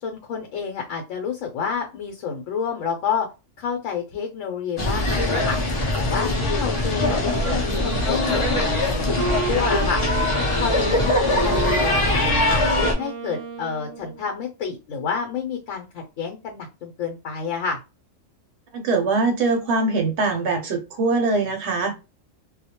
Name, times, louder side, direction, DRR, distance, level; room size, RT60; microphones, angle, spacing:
voice 1, 0.0-3.3 3.6-5.6 6.0-9.1 9.5-10.0 10.6-12.6 13.0-17.8, left 6 dB, 80° left, 2 dB, 1.0 m, -29 dB
sound 1, 4.8-12.9, left 2 dB, 50° left, 0.3 m, -22 dB
Wind instrument woodwind instrument, 7.6-14.3, right 4 dB, 90° right, 0.3 m, -32 dB
voice 2, 18.7-21.9, right 3 dB, 65° right, 5 dB, 0.9 m, -22 dB
2.3 x 2.1 x 2.8 m, 0.28 s
omnidirectional pair, 1.3 m